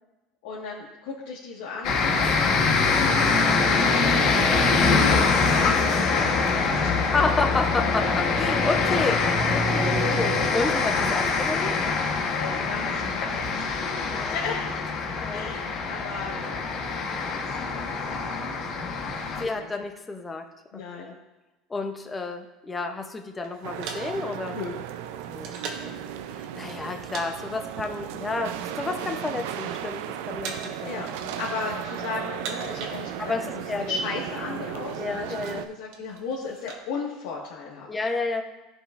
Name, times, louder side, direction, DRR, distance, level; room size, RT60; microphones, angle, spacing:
voice 1, 0.4-7.0 12.3-13.6 14.0-14.7 15.3-16.6 17.2-19.0 19.3-19.7 20.7-21.1 24.5-24.7 30.8-31.1 31.4-37.9, left 4 dB, 80° left, -6 dB, 1.6 m, -36 dB
sound 1, 1.8-19.4, left 4 dB, 50° left, 1.1 m, -24 dB
voice 2, 7.1-11.7 14.1-14.3 15.2-15.5 19.4-20.4 20.7-21.1 21.7-24.6 25.3-25.6 25.8-25.9 26.3-30.0 30.3-31.0 33.2-33.9 35.0-35.6 37.9-38.4, left 3 dB, 15° left, 5 dB, 0.7 m, -30 dB
sound 2, 23.4-26.0 26.7-27.3 27.5-27.8 28.4-29.2 29.5-30.0 30.4-30.9 31.2-31.8 32.2-33.5 33.7-33.8 34.0-34.4 34.9-36.8, right 5 dB, 60° right, 1.1 m, -40 dB
sound 3, 23.6-35.7, right 10 dB, 80° right, 0.4 m, -35 dB
15.0 x 5.1 x 2.5 m, 1.1 s
cardioid pair, 140°, 0 cm